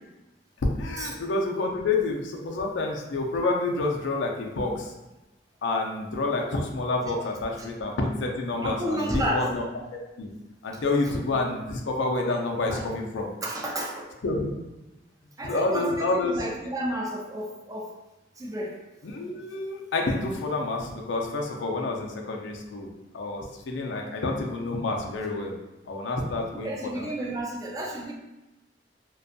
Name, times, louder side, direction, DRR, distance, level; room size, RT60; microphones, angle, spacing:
voice 1, 0.8-4.9 5.6-9.6 9.9-10.3 10.6-13.3 14.2-14.5 15.4-16.5 19.0-22.9 23.1-25.6 25.9-27.1, left 2 dB, 80° left, 1 dB, 0.4 m, -28 dB
voice 2, 8.6-9.5 12.7-12.8 13.4-14.1 15.4-17.9 18.4-18.8 26.6-28.1, right 1 dB, 20° right, -1 dB, 0.4 m, -31 dB
2.5 x 2.3 x 2.5 m, 1.0 s
head